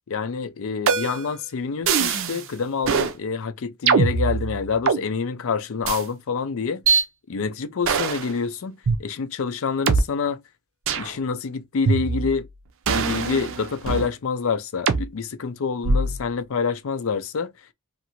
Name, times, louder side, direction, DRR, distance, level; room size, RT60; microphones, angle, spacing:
voice 1, 0.1-6.8 7.3-10.4 11.0-12.5 12.9-17.5, left 5 dB, 65° left, 0.5 m, -27 dB
sound 1, 0.9-1.3 1.9-2.4 2.8-3.1 3.9-5.0 5.8-6.0 6.9-7.0 7.8-8.3 8.9-9.0 9.9-10.0 10.9-11.1 11.9-12.4 12.9-14.1 14.9-15.0 15.8-16.2, right 5 dB, 60° right, 0.5 m, -22 dB
2.7 x 2.5 x 2.9 m
head